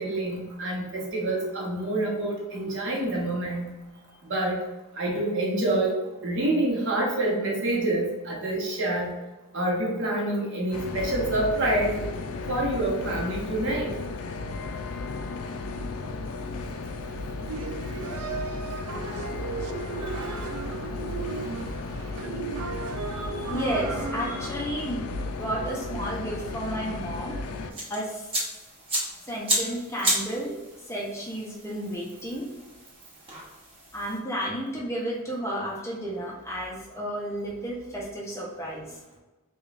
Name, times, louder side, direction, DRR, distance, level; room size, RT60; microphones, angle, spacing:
voice 1, 0.0-3.7 4.2-4.6 4.9-9.2 9.5-11.9 12.5-13.9 23.1-23.2, right 1 dB, 55° right, -2 dB, 0.9 m, -27 dB
sound 1, 10.7-27.7, left 3 dB, 65° left, 0.3 m, -34 dB
sound 2, 17.5-24.5, right 5 dB, 70° right, 0.4 m, -35 dB
voice 2, 23.5-25.0 25.4-27.4 27.9-28.3 29.3-30.5 30.9-32.5 33.9-38.8, equal, 10° left, -3 dB, 0.5 m, -32 dB
sound 3, 27.7-34.2, right 1 dB, 25° right, 0.9 m, -32 dB
5.0 x 2.2 x 2.4 m, 1.2 s
head